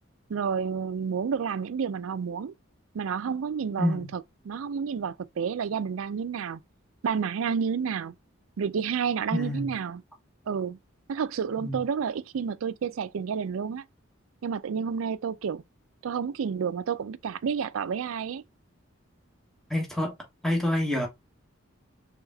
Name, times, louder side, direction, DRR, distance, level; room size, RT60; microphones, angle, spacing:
voice 1, 0.3-2.5 2.9-6.6 7.0-8.1 8.6-10.0 10.5-10.8 11.1-13.8 14.4-15.6 16.0-18.4, right 6 dB, 80° right, 0.4 m, -30 dB
voice 2, 3.8-4.1 9.3-9.7 11.6-11.8 19.7-20.1 20.4-21.1, left 1 dB, ahead, 1.1 m, -27 dB
4.8 x 3.5 x 2.2 m
head